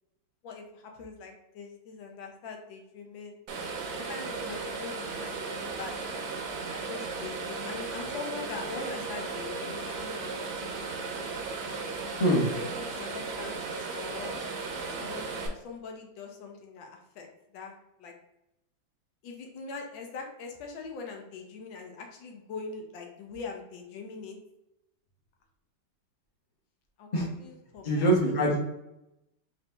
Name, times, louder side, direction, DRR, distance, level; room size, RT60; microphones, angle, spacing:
voice 1, 0.4-3.3 3.9-6.0 6.7-10.5 12.2-14.4 15.0-18.1 19.2-24.4 27.0-28.3, left 4 dB, 80° left, 2 dB, 1.5 m, -42 dB
sound 1, 3.5-15.5, right 4 dB, 65° right, 1.0 m, -36 dB
voice 2, 27.8-28.6, right 1 dB, 30° left, -2 dB, 0.8 m, -23 dB
4.3 x 2.6 x 3.3 m, 0.87 s
omnidirectional pair, 2.1 m